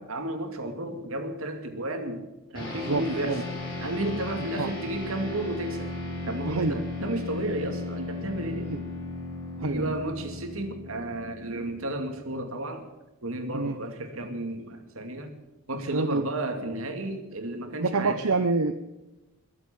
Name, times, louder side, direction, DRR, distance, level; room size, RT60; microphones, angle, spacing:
voice 1, 0.0-2.3 2.5-3.4 3.8-5.9 6.2-8.8 9.6-12.9 13.2-15.3 15.7-18.2, right 1 dB, 75° right, 6 dB, 2.4 m, -32 dB
sound 1, 2.5-12.2, left 2 dB, 20° left, 5.5 m, -36 dB
voice 2, 2.9-3.4 4.6-4.7 6.4-6.8 8.7-8.8 9.6-10.0 13.5-13.8 15.9-16.2 17.8-18.7, right 3 dB, 90° right, 9 dB, 0.8 m, -27 dB
22.0 x 8.0 x 7.3 m, 0.99 s
head